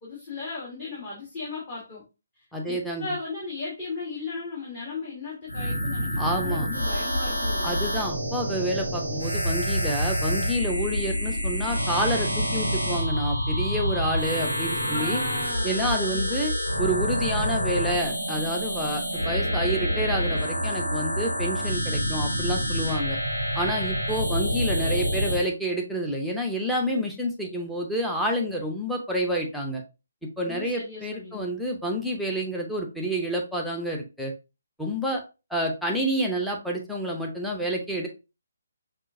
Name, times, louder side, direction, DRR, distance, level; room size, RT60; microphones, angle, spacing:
voice 1, 0.0-2.0 2.7-7.8 14.8-16.4 30.4-31.5, left 3 dB, 30° left, -6 dB, 1.5 m, -36 dB
voice 2, 2.5-3.0 6.2-6.7 7.6-15.2 15.6-16.5 16.8-23.2 23.5-29.8 30.4-34.3 34.8-35.2 35.5-38.1, equal, ahead, -1 dB, 0.7 m, -28 dB
sound 1, 5.5-25.5, equal, 90° left, 1.6 m, -27 dB
5.3 x 2.6 x 2.6 m, 0.28 s
figure-of-eight pair, 140°, 0 cm